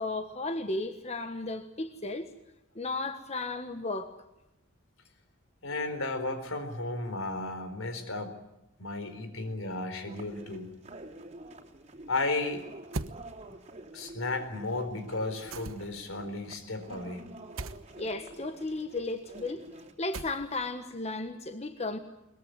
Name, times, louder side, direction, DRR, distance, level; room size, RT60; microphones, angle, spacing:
voice 1, 0.0-2.3 2.7-4.1 18.0-19.6 20.0-22.0, left 2 dB, 30° left, 7 dB, 1.3 m, -34 dB
voice 2, 5.6-8.4 8.8-10.7 12.1-12.6 13.9-17.3, left 2 dB, 75° left, 9 dB, 4.1 m, -34 dB
sound 1, 10.1-19.9, right 2 dB, 30° right, 3.1 m, -49 dB
sound 2, 12.9-13.2 15.5-16.0 17.6-17.8 20.1-20.7, right 3 dB, 75° right, 1.1 m, -37 dB
22.0 x 21.5 x 9.6 m, 0.88 s
head